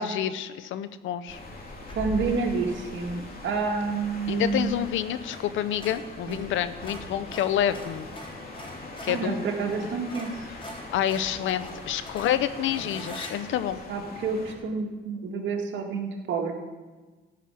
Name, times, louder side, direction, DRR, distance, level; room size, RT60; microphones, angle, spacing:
voice 1, 0.0-1.4 4.3-8.1 9.0-9.4 10.9-13.8, left 10 dB, 80° left, 13 dB, 0.7 m, -28 dB
sound 1, 1.3-14.5, left 2 dB, 50° left, 2.7 m, -41 dB
sound 2, 1.9-2.2 5.3-5.5 5.7-9.3 9.7-9.8 10.1-13.3, equal, 25° left, 4.1 m, -43 dB
voice 2, 1.9-4.7 6.3-6.4 9.1-10.3 13.9-16.5, right 4 dB, 70° right, 1 dB, 2.0 m, -29 dB
14.5 x 5.8 x 8.4 m, 1.3 s
cardioid pair, 90°, 20 cm